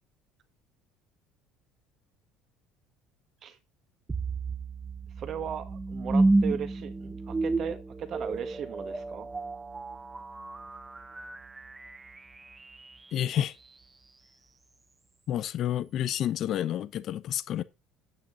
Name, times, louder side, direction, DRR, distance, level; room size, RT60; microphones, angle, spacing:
sound 1, 4.1-13.2, right 2 dB, 10° right, 0.8 m, -31 dB
voice 1, 5.2-9.3, right 8 dB, 35° right, 1.6 m, -37 dB
voice 2, 13.1-13.5 15.3-17.6, left 11 dB, 40° left, 0.8 m, -29 dB
9.7 x 8.8 x 3.9 m
cardioid pair, 160°, 0 cm